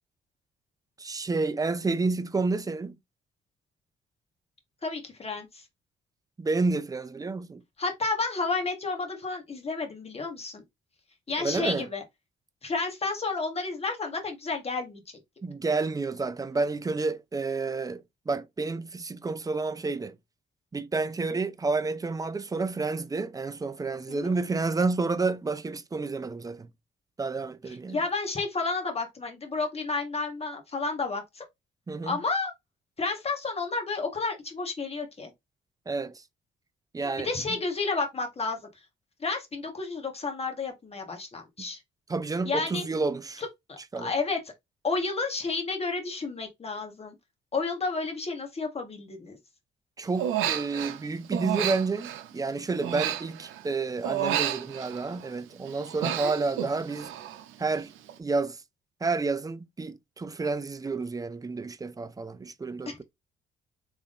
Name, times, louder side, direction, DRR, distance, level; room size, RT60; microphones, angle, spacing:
voice 1, 1.0-3.0 6.4-7.6 11.4-11.9 15.4-20.2 20.7-26.7 27.2-28.0 31.9-32.2 35.9-36.2 36.9-37.6 41.6-41.7 42.1-43.4 43.9-44.1 50.0-57.1 57.6-57.9 58.2-58.6 59.0-63.0, right 3 dB, 20° right, 0.5 m, -30 dB
voice 2, 4.8-5.6 7.8-10.6 11.3-12.0 12.6-15.0 24.1-24.3 27.9-31.4 32.0-32.5 33.0-35.3 37.2-38.7 39.2-41.8 42.4-42.8 43.7-44.4 44.8-47.2 47.5-49.4 56.2-56.3 62.9-63.0, left 3 dB, 30° left, 1.4 m, -31 dB
Human voice, 50.2-51.0 51.3-53.7 54.0-55.3 55.6-57.5 57.7-58.1, right 11 dB, 90° right, 0.6 m, -31 dB
3.5 x 3.5 x 2.5 m
cardioid pair, 90°, 20 cm